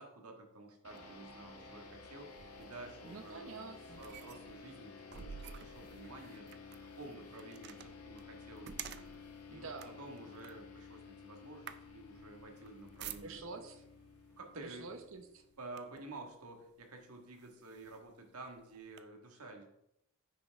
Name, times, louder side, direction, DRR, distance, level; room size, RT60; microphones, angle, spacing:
voice 1, 0.0-6.5 6.9-9.1 9.4-9.7 10.0-13.4 14.4-14.9 15.6-19.6, right 2 dB, 85° right, 3 dB, 1.6 m, -51 dB
sound 1, 0.8-15.7, left 4 dB, 85° left, 1.4 m, -53 dB
sound 2, 0.9-13.7 14.5-14.8 15.2-16.2 16.8-16.9 17.3-19.0, right 8 dB, 50° right, 0.4 m, -52 dB
voice 2, 3.0-4.0 9.5-10.0 13.2-13.8 14.6-15.4, right 4 dB, 65° right, 7 dB, 0.9 m, -47 dB
9.5 x 5.9 x 3.5 m, 0.80 s
head